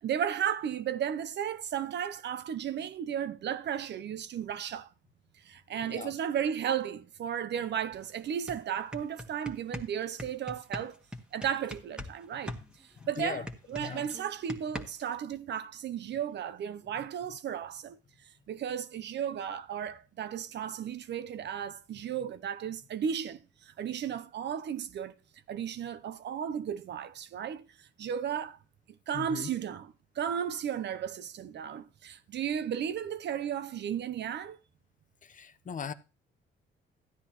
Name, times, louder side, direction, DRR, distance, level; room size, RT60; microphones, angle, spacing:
voice 1, 0.0-4.9 5.4-11.0 11.3-12.6 13.1-18.0 18.5-25.1 25.5-28.6 29.1-34.6, right 9 dB, 60° right, 0.7 m, -34 dB
sound 1, 7.9-8.0 8.3-12.2 12.5-15.2, left 1 dB, 5° right, 1.5 m, -41 dB
voice 2, 29.1-29.5 35.2-35.9, left 7 dB, 40° left, 0.8 m, -38 dB
13.5 x 9.6 x 3.0 m
cardioid pair, 90°, 20 cm